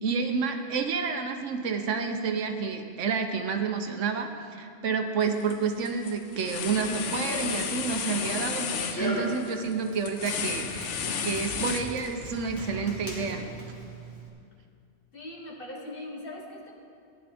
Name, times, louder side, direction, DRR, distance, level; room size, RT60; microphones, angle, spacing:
voice 1, 0.0-8.7 9.0-10.9 11.2-13.4, right 5 dB, 80° right, 5 dB, 1.2 m, -29 dB
sound 1, 5.2-5.5 5.9-12.4, left 6 dB, 75° left, 1.0 m, -33 dB
Run, 6.6-14.3, equal, 15° left, 1.5 m, -39 dB
voice 2, 15.1-16.7, left 1 dB, 50° left, -2 dB, 1.7 m, -40 dB
16.0 x 10.0 x 3.5 m, 2.4 s
omnidirectional pair, 1.2 m